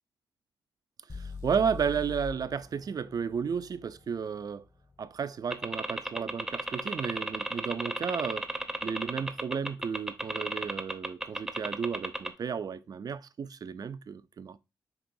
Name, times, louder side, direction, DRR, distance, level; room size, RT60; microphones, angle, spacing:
sound 1, 1.1-5.0, left 4 dB, 45° left, 2.4 m, -43 dB
voice 1, 1.1-4.6 5.0-8.5 8.8-14.6, right 6 dB, 50° right, 0.3 m, -33 dB
sound 2, 5.5-12.3, right 1 dB, 5° right, 0.6 m, -33 dB
5.9 x 2.9 x 2.6 m
cardioid pair, 80°, 8 cm